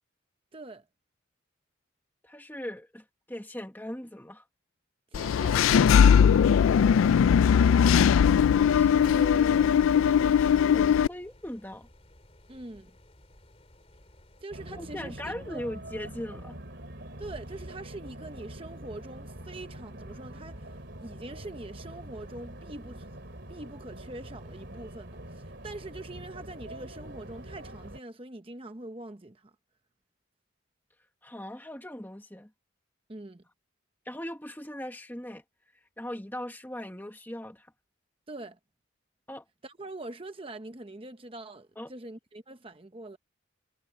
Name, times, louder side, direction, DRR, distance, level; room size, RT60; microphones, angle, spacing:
voice 1, 0.5-0.8 5.1-6.4 12.5-13.0 14.4-15.6 17.2-23.2 23.5-29.5 33.1-33.4 38.3-38.6 39.6-43.2, right 2 dB, 25° right, 0.9 m, -43 dB
voice 2, 2.2-4.4 8.5-11.9 14.8-16.6 31.2-32.5 34.0-35.4 36.0-37.7 39.3-39.4 41.8-41.9, left 1 dB, 10° left, 1.4 m, -39 dB
Engine / Mechanisms, 5.1-11.1, left 7 dB, 85° left, 0.3 m, -20 dB
sound 1, 7.6-14.4, left 1 dB, 30° left, 3.4 m, -57 dB
sound 2, 14.5-28.0, right 1 dB, 60° right, 3.2 m, -44 dB
head